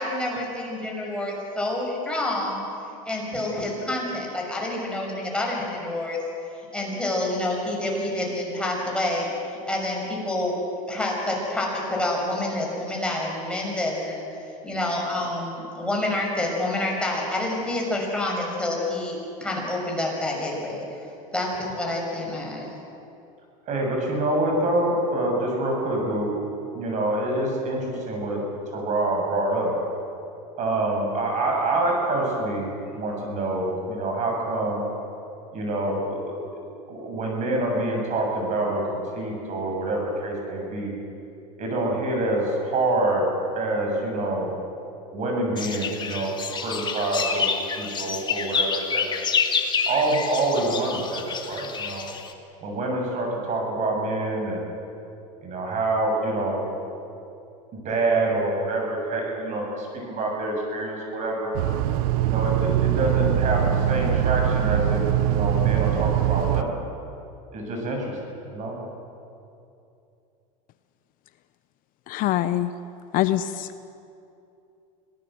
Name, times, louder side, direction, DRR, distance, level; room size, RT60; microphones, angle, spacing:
voice 1, 0.0-2.6 3.1-6.2 6.7-10.6 10.9-21.0 21.3-22.7, left 1 dB, 5° left, -2 dB, 6.3 m, -28 dB
voice 2, 23.7-26.3 26.7-28.4 28.7-29.8 30.6-32.7 32.9-34.8 35.5-41.0 41.6-43.2 43.6-44.5 45.1-47.4 47.8-49.1 49.9-52.1 52.6-54.7 55.4-56.7 57.7-61.5 62.2-66.7 67.5-68.1 68.5-68.8, right 2 dB, 40° right, 1 dB, 7.3 m, -26 dB
sound 1, 45.6-52.3, left 5 dB, 25° left, 1.9 m, -28 dB
sound 2, 61.5-66.6, right 11 dB, 75° right, 0.8 m, -22 dB
voice 3, 72.1-72.7 73.1-73.9, left 13 dB, 50° left, 12 dB, 0.8 m, -24 dB
25.5 x 18.0 x 7.8 m, 2.7 s
supercardioid pair, 120°, 18 cm